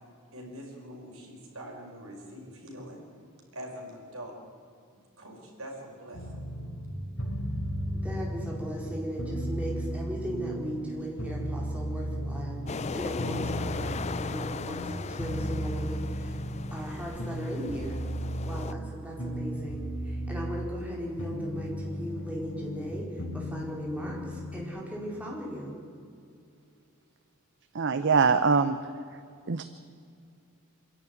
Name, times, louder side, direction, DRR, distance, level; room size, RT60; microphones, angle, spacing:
voice 1, 0.3-3.0 3.5-4.3 5.2-6.3, equal, 75° right, 0 dB, 5.2 m, -43 dB
sound 1, 6.1-24.6, equal, 70° left, 3.7 m, -35 dB
voice 2, 7.9-16.4 16.7-18.0 18.4-23.1 23.3-25.7, equal, 5° right, -3 dB, 4.5 m, -37 dB
sound 2, 12.7-18.7, left 5 dB, 30° left, 0.4 m, -38 dB
voice 3, 27.7-28.8 29.5-29.6, right 5 dB, 60° right, 11 dB, 0.7 m, -23 dB
26.0 x 11.0 x 9.5 m, 2.4 s
head